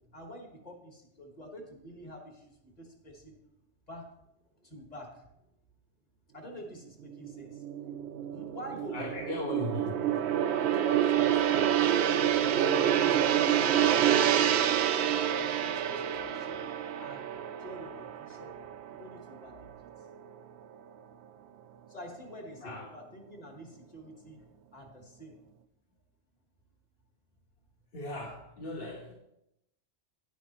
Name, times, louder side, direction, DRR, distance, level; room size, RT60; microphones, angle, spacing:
voice 1, 0.1-3.4 3.9-4.0 4.6-5.3 6.3-7.6 8.3-9.4 10.7-12.5 12.8-16.6 17.0-17.3 17.6-18.6 18.9-19.7 21.9-24.4 24.7-25.3, equal, 35° left, 1 dB, 1.8 m, -47 dB
Gong, 7.1-19.6 19.9-20.2, right 10 dB, 65° right, 0.8 m, -28 dB
voice 2, 8.9-10.2 10.6-10.7 22.6-22.8 27.9-29.1, left 1 dB, 50° left, -2 dB, 1.6 m, -38 dB
11.5 x 10.0 x 3.0 m, 0.83 s
omnidirectional pair, 1.3 m